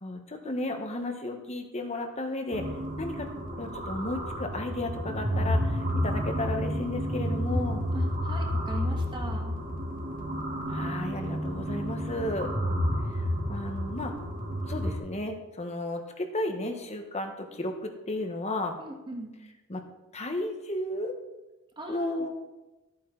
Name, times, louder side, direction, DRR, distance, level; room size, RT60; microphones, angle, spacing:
voice 1, 0.0-2.6 3.0-3.3 3.6-7.8 10.7-12.5 13.5-14.1 14.7-18.8 19.7-19.8 20.1-21.1 21.9-22.3, left 1 dB, 30° left, 5 dB, 1.1 m, -33 dB
sound 1, 2.5-15.0, equal, 40° right, 1.6 m, -30 dB
voice 2, 7.9-9.6 18.8-19.4 21.8-22.3, right 1 dB, 25° right, 1 dB, 1.6 m, -39 dB
13.5 x 8.8 x 3.9 m, 1.1 s
head